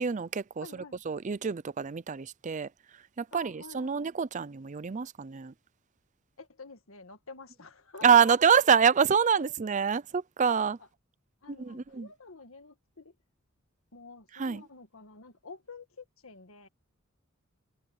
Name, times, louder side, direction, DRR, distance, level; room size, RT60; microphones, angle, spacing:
voice 1, 0.0-0.7 1.1-2.7 3.2-5.5 8.0-10.8 11.6-12.1 14.3-14.6, right 7 dB, 35° right, 0.5 m, -26 dB
voice 2, 0.6-1.0 3.3-4.1 6.4-8.4 8.8-8.9 9.2-9.4 10.8-10.9 11.4-13.1 13.9-16.7, left 4 dB, 85° left, 1.7 m, -48 dB
head